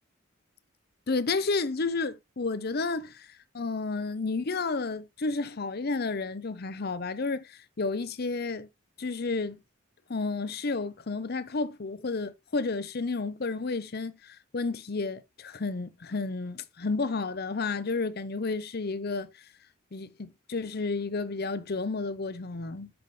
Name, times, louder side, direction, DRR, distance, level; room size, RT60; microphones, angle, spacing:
voice 1, 1.1-8.7 9.0-9.6 10.1-19.3 19.9-22.9, left 3 dB, 50° left, 0.7 m, -31 dB
7.8 x 7.1 x 3.2 m
head